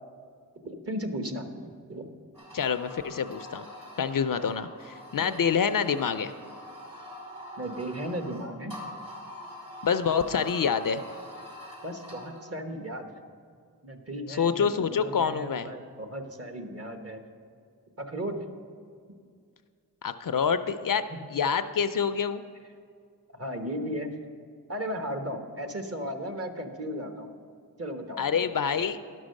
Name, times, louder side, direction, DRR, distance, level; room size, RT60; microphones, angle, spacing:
voice 1, 0.6-2.1 5.2-5.3 7.6-8.8 11.8-13.1 13.8-17.3 18.0-18.5 20.6-20.7 21.1-21.2 23.3-24.1 24.7-27.3 27.8-28.6, equal, 35° right, 6 dB, 1.1 m, -36 dB
sound 1, 2.3-12.5, equal, 60° right, 2.6 m, -44 dB
voice 2, 2.5-3.6 4.0-6.3 9.8-11.0 14.3-15.7 20.0-21.0 21.3-22.4 28.2-29.0, left 6 dB, 55° left, 11 dB, 0.5 m, -27 dB
11.0 x 6.2 x 6.4 m, 2.2 s
cardioid pair, 55°, 39 cm